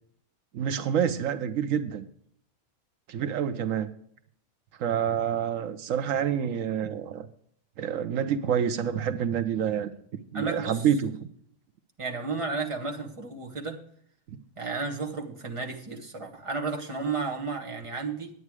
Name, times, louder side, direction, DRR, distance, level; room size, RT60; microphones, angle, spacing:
voice 1, 0.5-2.1 3.1-3.9 4.8-7.3 7.8-9.9 10.3-11.1 14.3-14.4, right 8 dB, 80° right, 12 dB, 1.1 m, -27 dB
voice 2, 10.3-10.8 12.0-13.8 14.6-18.3, right 4 dB, 25° right, 1 dB, 1.4 m, -32 dB
9.6 x 9.3 x 4.7 m, 0.63 s
omnidirectional pair, 1.4 m